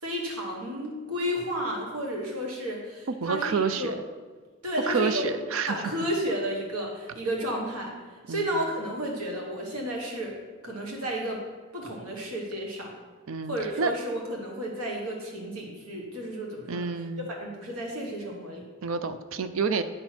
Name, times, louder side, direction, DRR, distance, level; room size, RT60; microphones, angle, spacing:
voice 1, 0.0-4.0 4.6-5.3 5.7-7.9 8.3-10.4 10.6-11.4 11.7-12.9 13.5-16.9 17.3-18.6, equal, 80° right, -1 dB, 1.5 m, -32 dB
voice 2, 3.2-4.0 4.9-5.8 8.3-8.5 13.3-13.9 16.7-17.3 18.8-19.8, right 5 dB, 60° right, 11 dB, 0.4 m, -28 dB
9.9 x 4.3 x 6.0 m, 1.4 s
head